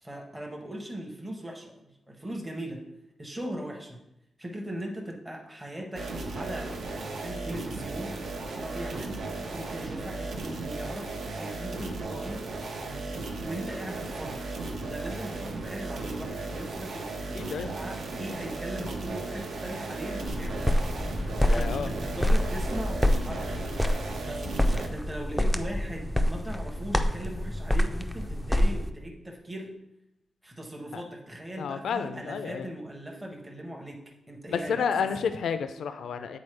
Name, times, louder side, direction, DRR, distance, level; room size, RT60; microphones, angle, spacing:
voice 1, 0.0-2.8 3.2-4.0 4.4-8.2 8.6-12.4 12.8-14.4 14.8-20.8 21.2-23.6 24.2-24.5 24.9-29.7 30.4-35.1, right 1 dB, 10° right, 0 dB, 0.8 m, -39 dB
sound 1, 5.9-24.9, right 3 dB, 75° right, 0.8 m, -36 dB
voice 2, 17.3-17.7 21.4-21.9 30.9-31.0 31.6-32.7 34.5-36.4, left 6 dB, 85° left, 10 dB, 0.4 m, -30 dB
sound 2, 20.3-28.9, left 1 dB, 5° left, 0.3 m, -27 dB
8.6 x 4.0 x 3.3 m, 0.86 s
wide cardioid pair, 140°, 0 cm